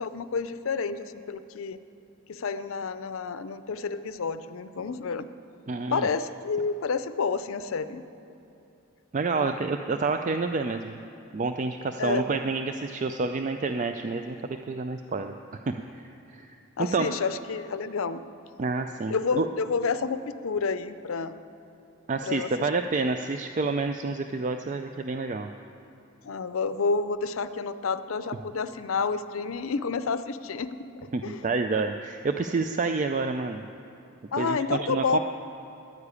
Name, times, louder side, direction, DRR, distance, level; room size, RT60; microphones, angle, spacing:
voice 1, 0.0-1.8 2.3-5.3 5.9-8.0 9.4-9.6 12.0-12.3 16.8-18.2 19.1-21.4 22.2-22.5 26.2-30.9 31.2-31.4 34.3-35.2, left 5 dB, 80° left, 13 dB, 0.5 m, -29 dB
voice 2, 5.7-6.1 9.1-11.0 11.3-15.6 15.9-16.0 16.3-16.6 16.9-17.1 18.6-19.5 22.1-25.5 31.1-33.7 34.4-35.2, right 3 dB, 35° right, 7 dB, 0.3 m, -28 dB
11.0 x 9.8 x 8.2 m, 2.8 s
head